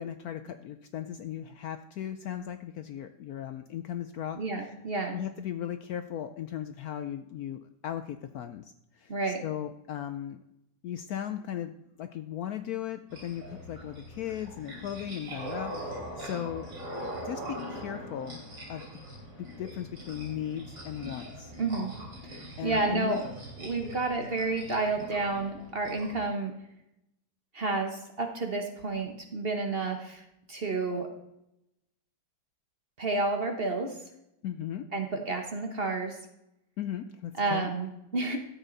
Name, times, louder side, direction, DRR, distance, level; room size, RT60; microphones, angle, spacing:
voice 1, 0.0-4.7 5.1-9.1 9.4-10.4 10.8-16.7 17.2-18.4 18.7-18.9 19.4-21.5 22.6-23.2 34.4-34.8 36.8-37.7, left 10 dB, 70° left, 9 dB, 0.9 m, -37 dB
voice 2, 4.4-5.2 9.1-9.4 21.6-21.9 22.2-23.2 23.6-26.5 27.5-31.1 33.0-34.0 34.9-36.2 37.4-38.4, right 3 dB, 40° right, 4 dB, 1.1 m, -30 dB
sound 1, 13.1-26.3, equal, 75° right, 3.7 m, -42 dB
13.0 x 8.1 x 4.0 m, 0.84 s
omnidirectional pair, 2.0 m